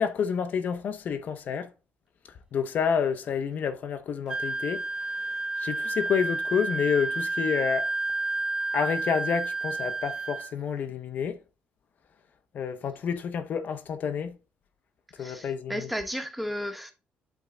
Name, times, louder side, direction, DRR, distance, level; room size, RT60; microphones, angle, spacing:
voice 1, 0.0-1.7 2.5-4.8 5.6-7.9 8.7-11.4 12.5-14.3 15.2-15.9, left 7 dB, 55° left, 0.8 m, -29 dB
Wind instrument woodwind instrument, 4.3-10.5, right 2 dB, 20° right, 0.4 m, -30 dB
voice 2, 15.2-16.9, equal, ahead, 1.2 m, -34 dB
8.3 x 3.7 x 3.8 m
cardioid pair, 110°, 3 cm